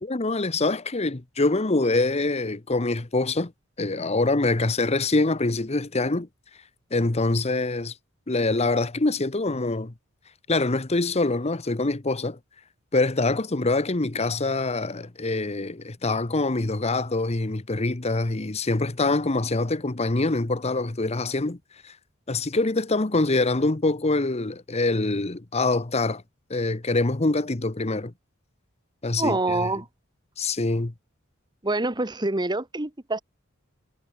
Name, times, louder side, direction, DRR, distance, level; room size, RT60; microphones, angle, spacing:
voice 1, 0.0-3.5 3.8-6.3 6.9-7.9 8.3-9.9 10.5-12.4 12.9-21.6 21.8-21.9 22.3-26.2 26.5-28.1 29.0-29.7 30.4-30.9, left 2 dB, 30° left, 1.0 m, -25 dB
voice 2, 29.2-29.9 31.6-33.2, right 2 dB, 20° right, 1.3 m, -26 dB
head